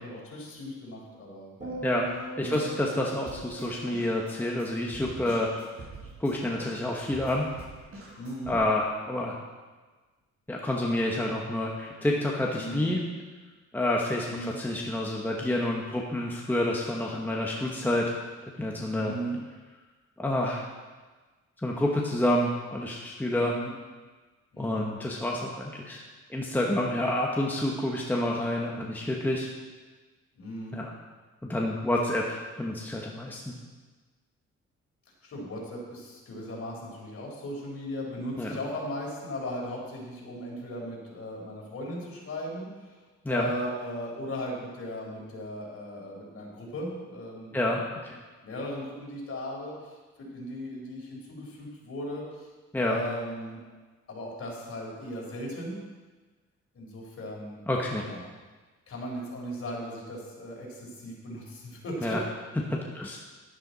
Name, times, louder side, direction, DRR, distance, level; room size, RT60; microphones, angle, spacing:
voice 1, 0.0-1.8 2.4-2.7 8.2-8.6 12.5-12.9 14.3-14.6 18.9-19.4 23.4-23.7 24.5-24.8 30.4-30.8 35.2-43.0 43.3-47.6 48.4-52.5 52.8-53.6 54.1-55.8 56.7-57.6 58.0-58.2 58.9-62.2, equal, 50° left, -3 dB, 4.2 m, -37 dB
sound 1, 1.6-6.0 6.3-6.7, right 3 dB, 25° right, 3.5 m, -42 dB
voice 2, 2.4-5.5 6.2-7.5 8.5-9.4 10.5-13.0 13.7-18.1 18.4-19.1 20.2-20.7 21.6-23.5 24.6-26.0 26.3-29.5 30.7-30.9 31.4-33.5 38.4-38.6 43.2-43.5 47.5-47.8 52.7-53.0 57.7-58.0 62.0-62.2 62.7-63.2, left 1 dB, 5° left, -2 dB, 1.2 m, -28 dB
Drum kit, 3.3-8.6, right 2 dB, 50° right, 4.5 m, -45 dB
11.5 x 11.0 x 4.1 m, 1.3 s
cardioid pair, 115°, 29 cm